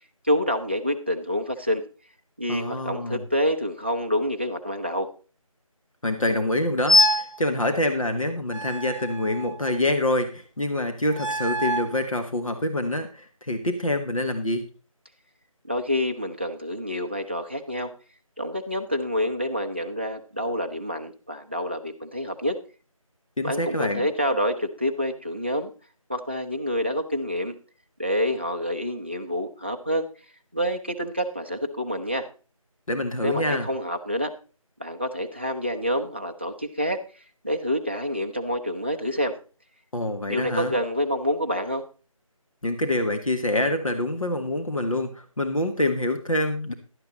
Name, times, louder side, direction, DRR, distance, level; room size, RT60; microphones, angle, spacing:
voice 1, 0.2-1.8 2.4-5.1 15.7-17.9 18.4-22.6 23.4-25.7 26.1-27.6 28.0-30.1 30.5-32.3 33.2-34.3 34.8-37.0 37.4-39.3 40.3-41.8, equal, 20° right, 4 dB, 0.6 m, -27 dB
voice 2, 2.5-3.2 6.0-14.7 23.4-24.1 32.9-33.7 39.9-40.7 42.6-46.7, left 1 dB, 65° left, 5 dB, 1.5 m, -26 dB
sound 1, 6.9-7.4 8.5-9.8 11.1-12.0, left 1 dB, 55° right, 0.6 m, -24 dB
11.5 x 8.9 x 4.0 m, 0.36 s
figure-of-eight pair, 165°, 18 cm